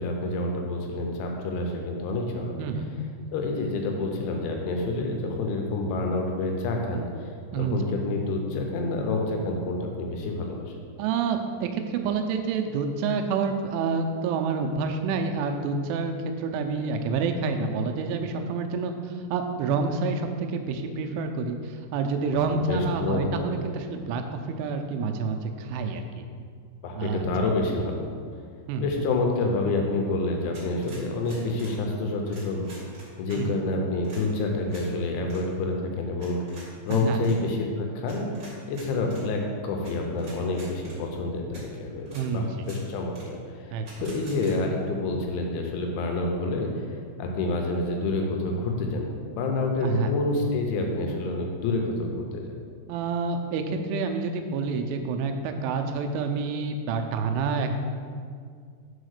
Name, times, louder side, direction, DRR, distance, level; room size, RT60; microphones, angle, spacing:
voice 1, 0.0-2.7 3.3-7.3 7.5-10.7 22.7-23.5 26.8-28.0 28.8-38.3 38.7-46.9 47.2-52.5, left 2 dB, 80° left, 2 dB, 3.0 m, -28 dB
voice 2, 11.0-26.2 26.9-27.3 28.7-28.9 33.3-33.6 36.9-37.2 42.1-42.6 43.7-44.1 49.8-50.1 52.9-57.7, right 4 dB, 85° right, 5 dB, 3.0 m, -28 dB
sound 1, 30.5-31.8 32.3-33.4 34.0-34.2 34.7-34.9 35.2-35.4 36.2-37.4 38.1-39.2 39.8-39.9 40.2-41.0 41.5-41.6 42.0-42.2 42.6-42.8 43.1-43.3 43.8-44.5, right 2 dB, 60° right, 1.1 m, -47 dB
6.4 x 5.0 x 6.5 m, 2.1 s
omnidirectional pair, 5.6 m